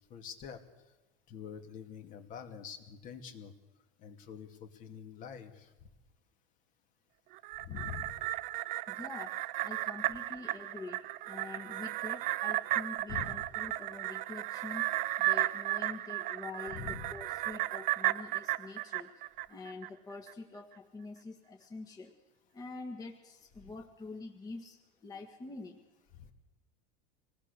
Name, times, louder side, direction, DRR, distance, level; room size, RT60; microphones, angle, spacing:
voice 1, 0.1-0.6 1.3-3.5 4.0-5.9 7.6-8.2 13.1-13.3 16.7-17.1 26.1-26.3, left 8 dB, 40° left, 6 dB, 2.4 m, -45 dB
sound 1, 7.3-19.9 20.3-20.4, right 17 dB, 45° right, 0.6 m, -34 dB
voice 2, 8.9-14.9 15.2-22.1 22.5-25.8, left 3 dB, 20° left, 1 dB, 1.8 m, -46 dB
26.0 x 19.0 x 6.7 m, 1.1 s
supercardioid pair, 145°, 20 cm